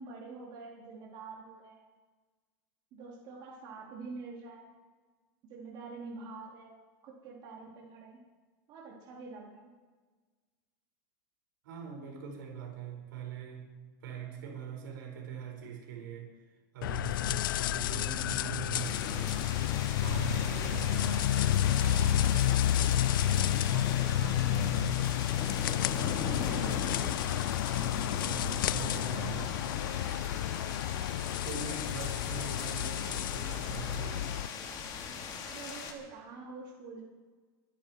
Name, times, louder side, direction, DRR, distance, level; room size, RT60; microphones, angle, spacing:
voice 1, 0.0-1.9 2.9-4.7 5.5-8.2 8.7-9.7 35.5-37.0, right 4 dB, 45° right, -3 dB, 3.3 m, -46 dB
voice 2, 11.6-16.3 16.7-19.4 20.0-25.1 25.8-27.2 27.7-29.6 31.4-34.3, right 7 dB, 80° right, 1 dB, 5.4 m, -42 dB
sound 1, 16.8-34.5, left 12 dB, 85° left, 0.5 m, -30 dB
sound 2, 18.8-35.9, left 6 dB, 40° left, 2.6 m, -39 dB
24.0 x 10.5 x 4.7 m, 1.3 s
supercardioid pair, 135°, 11 cm